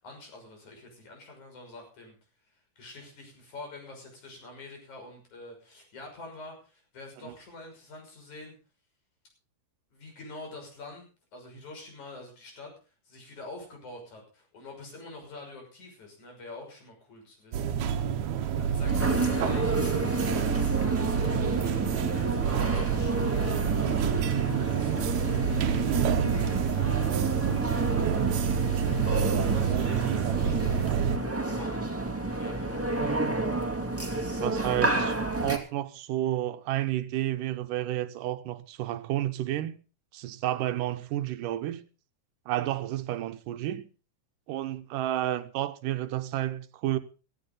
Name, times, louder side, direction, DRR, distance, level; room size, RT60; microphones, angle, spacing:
voice 1, 0.0-2.2 2.8-8.5 9.9-11.0 11.3-12.7 13.1-19.8 21.4-23.6 24.5-26.1 27.4-29.0 29.4-31.9 32.3-33.4, left 2 dB, 65° left, 7.5 m, -46 dB
sound 1, 17.5-31.2, right 8 dB, 70° right, 2.2 m, -28 dB
sound 2, 18.8-35.6, right 2 dB, 5° right, 1.6 m, -30 dB
voice 2, 34.4-39.8 40.1-41.8 42.5-43.9 44.5-47.0, right 13 dB, 90° right, 2.6 m, -31 dB
16.5 x 15.0 x 3.9 m
omnidirectional pair, 3.6 m